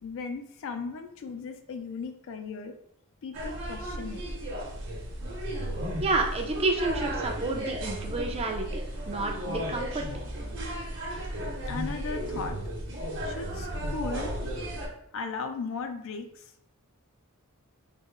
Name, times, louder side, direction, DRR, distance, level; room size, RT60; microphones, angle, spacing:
voice 1, 0.0-2.7 3.2-4.2 11.7-12.6 13.2-14.3 15.1-16.4, left 4 dB, 60° left, 7 dB, 0.4 m, -36 dB
sound 1, 3.3-14.9, right 1 dB, 55° right, 0.9 m, -34 dB
voice 2, 6.0-10.1, right 3 dB, 25° right, 2 dB, 0.5 m, -30 dB
3.7 x 2.0 x 3.6 m, 0.72 s
head